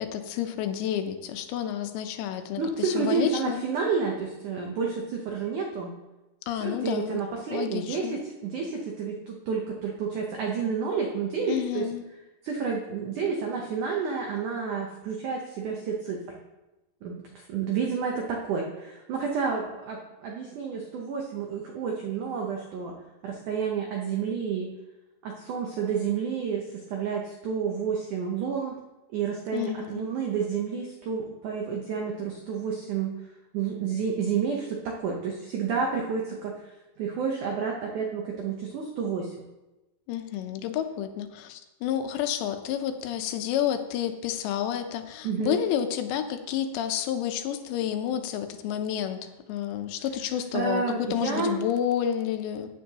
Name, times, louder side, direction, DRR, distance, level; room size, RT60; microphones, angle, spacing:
voice 1, 0.0-3.6 6.5-7.2 7.5-8.2 11.5-12.0 29.5-30.0 40.1-52.7, left 10 dB, 80° left, 7 dB, 3.0 m, -30 dB
voice 2, 2.6-5.9 6.6-11.9 12.4-16.2 17.0-22.9 23.2-24.7 25.2-28.8 29.1-33.2 33.5-39.3 45.2-45.6 50.5-51.5, right 6 dB, 85° right, 0 dB, 1.7 m, -30 dB
15.5 x 9.5 x 2.9 m, 1.0 s
omnidirectional pair, 5.0 m